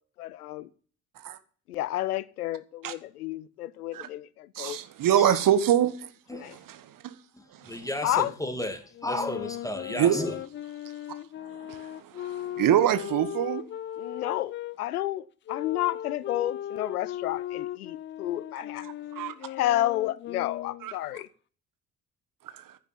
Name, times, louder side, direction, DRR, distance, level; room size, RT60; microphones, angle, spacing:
voice 1, 0.2-0.7 1.7-4.8 6.3-6.6 8.0-8.3 14.0-18.9 19.5-21.3, left 14 dB, 75° left, 0.7 m, -31 dB
voice 2, 4.5-6.1 6.4-7.1 7.5-7.9 9.9-10.2 11.4-13.6 18.8-19.3 20.8-20.9 22.5-22.8, right 10 dB, 45° right, 1.4 m, -26 dB
voice 3, 7.7-10.3, left 1 dB, 5° left, 2.4 m, -33 dB
sound 1, 8.9-14.8 15.5-20.9, left 12 dB, 25° left, 0.5 m, -37 dB
15.0 x 10.0 x 4.2 m
figure-of-eight pair, 50°, 45 cm